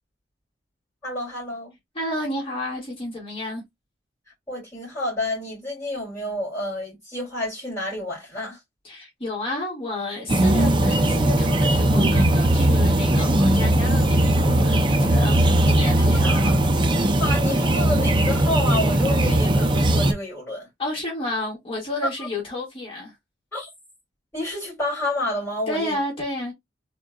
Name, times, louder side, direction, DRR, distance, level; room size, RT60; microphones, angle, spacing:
voice 1, 1.0-1.7 4.5-8.6 16.0-16.5 17.2-20.7 23.5-23.7 24.3-25.9, left 1 dB, 10° left, 2.7 m, -29 dB
voice 2, 1.9-3.6 8.8-15.5 15.7-16.5 20.8-23.1 25.7-26.5, left 1 dB, 30° left, 2.0 m, -31 dB
sound 1, 10.3-20.1, right 1 dB, 25° right, 0.5 m, -19 dB
3.6 x 3.6 x 2.3 m
head